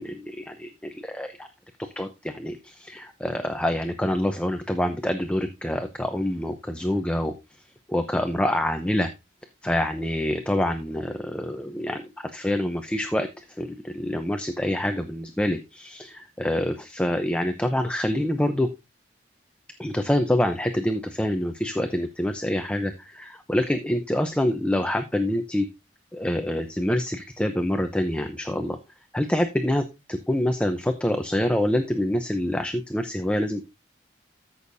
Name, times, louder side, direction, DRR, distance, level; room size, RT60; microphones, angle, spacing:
voice 1, 0.0-1.5 2.0-7.3 7.9-9.1 9.6-18.7 19.8-25.7 26.1-28.8 29.1-33.7, left 1 dB, 5° left, 6 dB, 0.6 m, -26 dB
13.5 x 6.4 x 2.6 m, 0.24 s
head